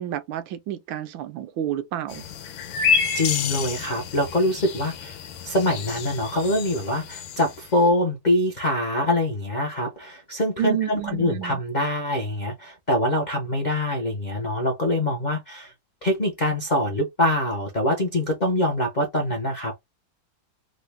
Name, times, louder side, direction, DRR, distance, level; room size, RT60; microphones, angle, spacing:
voice 1, 0.0-2.2 10.6-11.6, right 11 dB, 85° right, 1.3 m, -30 dB
sound 1, 2.1-7.7, left 6 dB, 85° left, 1.5 m, -29 dB
voice 2, 3.1-5.2 5.4-15.7 16.0-19.7, left 1 dB, 65° left, 0.4 m, -24 dB
3.7 x 2.0 x 3.3 m
omnidirectional pair, 2.1 m